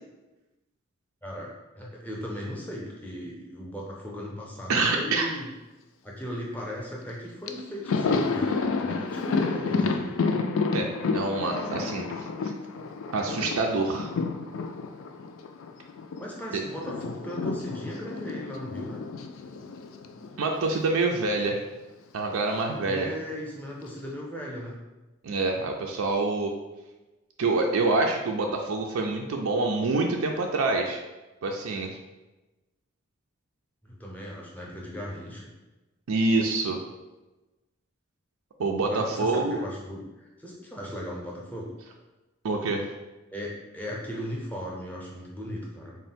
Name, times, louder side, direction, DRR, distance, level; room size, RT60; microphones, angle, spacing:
voice 1, 1.2-5.5 6.0-10.2 16.2-19.0 22.8-24.8 33.8-35.5 38.8-41.7 43.3-46.0, equal, 10° left, -4 dB, 0.6 m, -37 dB
voice 2, 4.7-5.3 10.7-12.1 12.4-12.5 13.1-14.1 16.5-16.6 20.4-21.6 22.1-23.1 25.2-26.5 27.4-31.0 31.4-31.9 36.1-36.8 38.6-39.6 42.4-42.8, right 3 dB, 85° right, 2 dB, 0.4 m, -26 dB
Thunder, 7.1-7.2 7.5-16.3 16.5-20.9 21.1-21.3 22.4-23.1, left 4 dB, 75° left, 0.3 m, -30 dB
3.7 x 2.2 x 4.2 m, 1.1 s
head